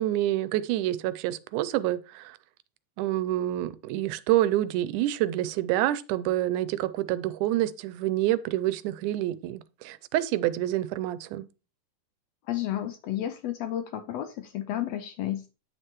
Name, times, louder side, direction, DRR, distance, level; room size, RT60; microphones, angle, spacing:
voice 1, 0.0-2.4 3.0-11.5, right 14 dB, 80° right, 2.0 m, -27 dB
voice 2, 12.5-15.5, left 12 dB, 85° left, 1.5 m, -32 dB
9.3 x 6.5 x 3.0 m
omnidirectional pair, 3.6 m